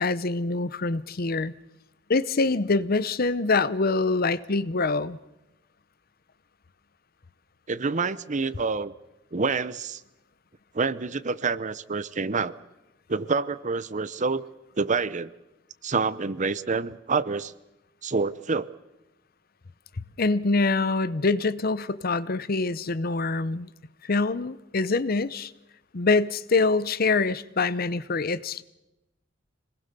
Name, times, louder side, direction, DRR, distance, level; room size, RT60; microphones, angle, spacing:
voice 1, 0.0-1.5 2.1-5.2 20.2-23.7 24.0-25.5 25.9-28.6, left 3 dB, 50° left, 0.8 m, -25 dB
voice 2, 7.7-8.9 9.3-10.0 10.7-12.5 13.1-14.4 14.8-15.3 15.8-17.5 18.0-18.7, right 4 dB, 40° right, 0.8 m, -27 dB
26.5 x 20.0 x 6.8 m
head